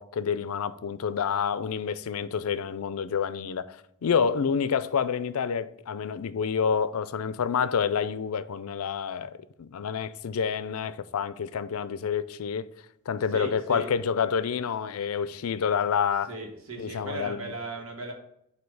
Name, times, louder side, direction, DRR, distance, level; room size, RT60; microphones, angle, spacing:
voice 1, 0.0-3.7 4.0-12.7 13.1-16.3 16.8-17.5, left 6 dB, 85° left, 0.4 m, -28 dB
voice 2, 13.3-13.9 16.3-18.1, right 3 dB, 80° right, 1.5 m, -37 dB
8.0 x 2.8 x 5.3 m
head